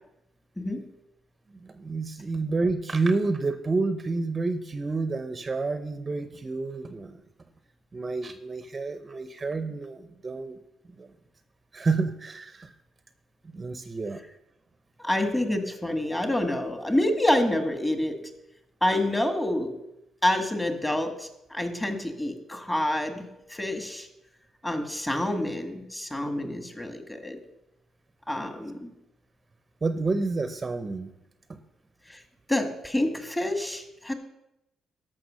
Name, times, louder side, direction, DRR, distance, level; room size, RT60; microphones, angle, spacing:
voice 1, 1.6-7.2 7.9-10.6 11.0-11.1 11.7-12.7 13.5-14.2 29.8-31.1 31.5-31.6, right 3 dB, 30° right, 9 dB, 0.7 m, -29 dB
voice 2, 15.0-18.2 18.8-19.7 20.2-23.3 23.5-24.1 24.6-27.4 28.3-28.9 32.1-32.2 32.5-34.1, left 1 dB, 15° left, 7 dB, 1.7 m, -27 dB
13.0 x 6.1 x 6.2 m, 0.85 s
cardioid pair, 90°, 0 cm